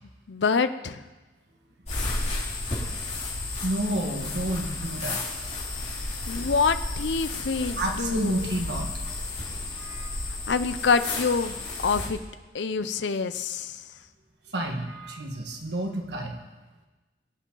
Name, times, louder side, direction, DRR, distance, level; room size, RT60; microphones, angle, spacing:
voice 1, 0.3-1.0 6.3-8.4 10.5-11.6 11.8-12.2 12.5-13.8, left 5 dB, 90° left, 12 dB, 0.6 m, -26 dB
sound 1, 1.8-12.1, left 2 dB, 40° left, 3.8 m, -32 dB
voice 2, 3.6-5.3 7.8-8.9 9.8-10.1 14.5-16.4, right 1 dB, 80° right, 2 dB, 1.7 m, -30 dB
21.0 x 9.0 x 3.9 m, 1.2 s
head